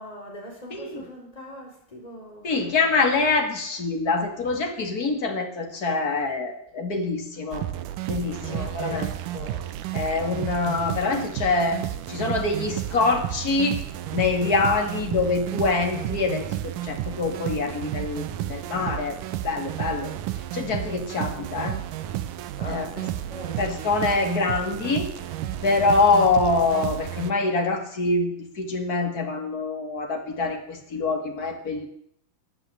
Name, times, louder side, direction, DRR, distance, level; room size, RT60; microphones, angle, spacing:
voice 1, 0.0-2.5 8.3-9.1 9.3-9.7 22.6-23.7, equal, 10° left, 0 dB, 4.4 m, -40 dB
voice 2, 0.7-1.0 2.4-7.7 8.1-9.1 9.9-11.8 12.1-13.8 14.1-19.2 19.4-20.1 20.5-21.8 22.7-23.0 23.6-25.1 25.6-31.9, left 3 dB, 30° left, 5 dB, 1.9 m, -25 dB
sound 1, 7.5-27.3, right 12 dB, 70° right, 2.1 m, -32 dB
15.0 x 9.6 x 9.8 m, 0.71 s
omnidirectional pair, 4.3 m